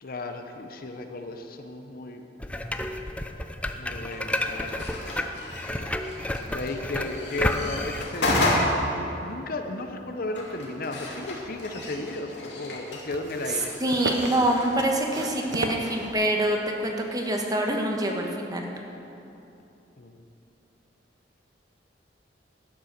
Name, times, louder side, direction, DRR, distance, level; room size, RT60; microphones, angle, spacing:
voice 1, 0.0-2.2 3.7-5.0 6.5-13.7 20.0-20.2, left 2 dB, 55° left, 6 dB, 0.8 m, -34 dB
sound 1, 2.4-8.0, left 1 dB, 5° left, 0.5 m, -31 dB
sound 2, 4.1-16.1, left 1 dB, 70° left, 2.3 m, -33 dB
sound 3, 11.1-12.0 13.1-16.5 17.4-17.5, right 2 dB, 90° right, 0.8 m, -35 dB
voice 2, 13.8-16.6 16.8-18.7, right 1 dB, 20° right, 1 dB, 1.3 m, -25 dB
11.5 x 8.7 x 6.6 m, 2.9 s
head